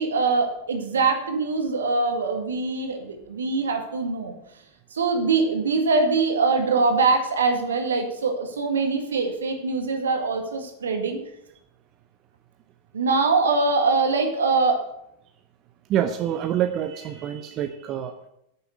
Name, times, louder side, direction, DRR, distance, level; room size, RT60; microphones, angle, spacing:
voice 1, 0.0-4.3 4.9-11.2 12.9-14.8, right 4 dB, 70° right, 5 dB, 2.0 m, -23 dB
voice 2, 15.9-18.3, right 10 dB, 35° right, 8 dB, 0.7 m, -26 dB
9.8 x 7.0 x 8.1 m, 0.80 s
figure-of-eight pair, 90°, 0 cm